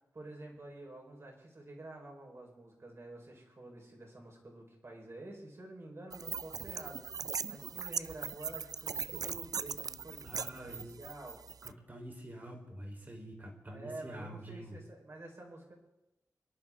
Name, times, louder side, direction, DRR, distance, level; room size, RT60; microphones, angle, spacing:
voice 1, 0.1-11.4 13.7-15.7, right 2 dB, 45° right, 0 dB, 4.3 m, -49 dB
sound 1, 6.1-11.7, right 6 dB, 70° right, 0.4 m, -40 dB
voice 2, 10.2-10.9 11.6-14.8, right 1 dB, 30° right, 0 dB, 3.9 m, -47 dB
26.5 x 11.0 x 3.7 m, 0.94 s
wide cardioid pair, 110°, 7 cm